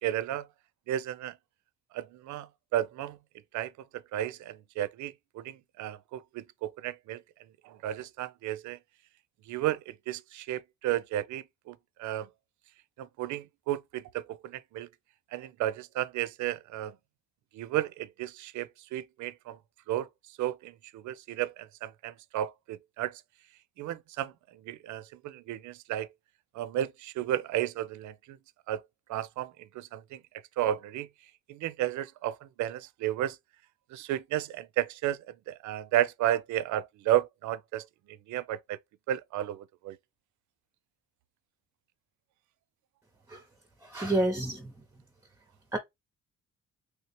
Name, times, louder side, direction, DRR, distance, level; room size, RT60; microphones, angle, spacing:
voice 1, 0.0-0.5 0.9-1.3 1.9-3.2 3.5-3.7 4.1-7.2 7.6-8.8 9.5-12.3 13.0-14.9 15.3-17.0 17.5-19.6 19.9-20.1 20.4-23.2 23.8-26.1 26.5-28.4 28.7-28.8 29.1-30.2 30.6-31.1 31.5-33.4 33.9-37.9 38.3-38.8 39.1-40.0, right 12 dB, 75° right, 0.4 m, -33 dB
voice 2, 43.8-44.7 45.7-45.8, right 1 dB, 10° right, 0.6 m, -29 dB
3.2 x 2.9 x 2.9 m
cardioid pair, 90°, 30 cm